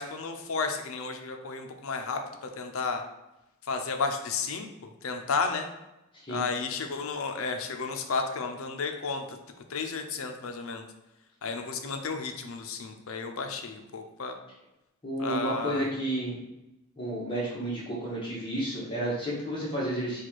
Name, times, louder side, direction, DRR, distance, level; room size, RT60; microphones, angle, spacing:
voice 1, 0.0-3.0 3.6-4.7 5.0-5.7 6.3-9.4 9.7-10.9 11.4-14.4 15.2-15.9, left 4 dB, 70° left, 5 dB, 0.5 m, -32 dB
voice 2, 15.0-16.4 17.0-20.2, right 1 dB, 20° left, -6 dB, 1.0 m, -31 dB
4.2 x 2.4 x 4.5 m, 0.92 s
head